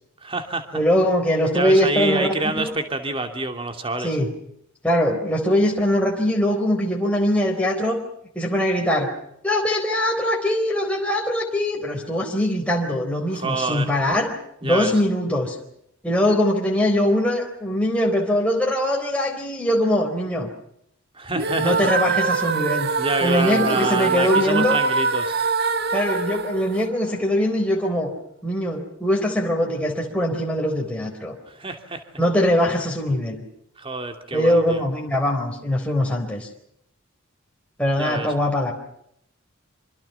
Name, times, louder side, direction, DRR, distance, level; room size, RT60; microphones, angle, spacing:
voice 1, 0.2-0.8 1.5-4.1 13.3-13.9 14.6-14.9 21.1-21.9 23.0-25.3 31.5-32.0 33.8-34.8 38.0-38.3, right 2 dB, 25° right, 6 dB, 2.8 m, -27 dB
voice 2, 0.7-2.7 4.0-4.3 4.8-8.0 8.4-9.1 9.4-14.3 14.6-15.6 16.0-20.5 21.6-22.9 23.2-24.8 25.9-28.1 28.4-31.3 32.2-33.4 34.3-36.5 37.8-38.7, left 1 dB, 5° left, -1 dB, 4.1 m, -22 dB
sound 1, 21.3-27.5, right 4 dB, 50° right, 1.5 m, -24 dB
26.5 x 26.5 x 5.8 m, 0.72 s
head